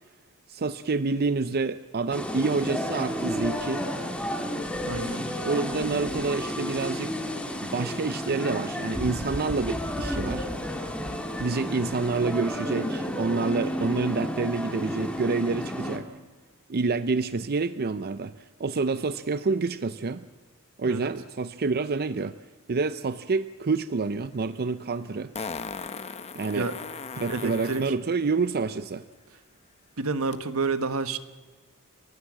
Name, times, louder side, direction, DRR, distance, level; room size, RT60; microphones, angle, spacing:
voice 1, 0.5-3.9 5.5-7.1 7.6-10.5 11.4-16.1 16.7-18.3 18.6-20.2 20.8-22.4 22.7-25.3 26.3-26.7 27.2-29.0, right 4 dB, 45° right, 13 dB, 0.6 m, -28 dB
sound 1, 2.1-16.0, equal, 5° left, 2.0 m, -31 dB
voice 2, 4.8-5.3 20.8-21.1 26.5-27.0 27.3-27.9 30.0-31.2, right 3 dB, 80° right, 11 dB, 1.3 m, -30 dB
Fart, 24.2-24.3 25.3-27.9 30.3-30.4, left 5 dB, 30° left, 0.9 m, -37 dB
30.0 x 14.5 x 7.4 m, 1.4 s
head